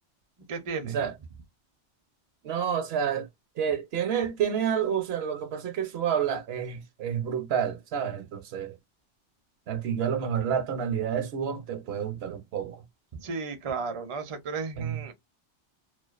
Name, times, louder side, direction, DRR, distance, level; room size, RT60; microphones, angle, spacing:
voice 1, 0.5-1.0 13.1-15.1, right 4 dB, 40° right, 0.4 m, -34 dB
voice 2, 2.4-3.3 3.6-8.8 9.7-12.8 14.8-15.0, right 8 dB, 70° right, 0.8 m, -29 dB
2.3 x 2.2 x 2.3 m
omnidirectional pair, 1.2 m